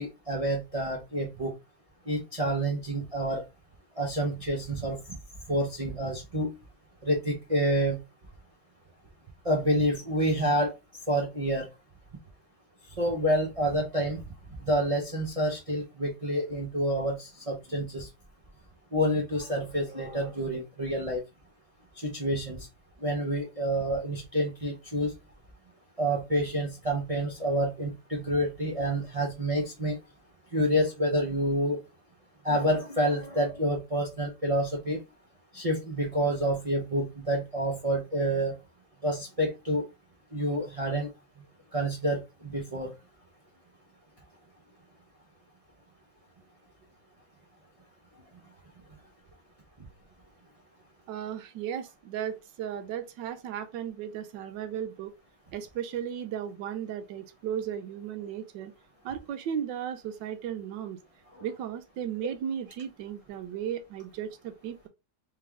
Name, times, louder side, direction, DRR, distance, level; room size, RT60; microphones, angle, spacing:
voice 1, 0.0-1.5 2.1-3.4 4.0-5.0 5.5-6.5 7.0-8.0 9.4-10.7 11.1-11.7 13.0-14.2 14.6-18.1 18.9-21.2 22.0-22.7 23.0-25.1 26.0-30.0 30.5-31.8 32.4-35.0 35.5-38.6 39.0-39.9 40.3-41.1 41.7-42.9, equal, 55° right, 0.3 m, -28 dB
voice 2, 51.1-55.1 55.5-58.7 59.0-61.0 61.4-64.9, right 9 dB, 80° right, 1.3 m, -35 dB
3.3 x 3.3 x 3.5 m
omnidirectional pair, 2.0 m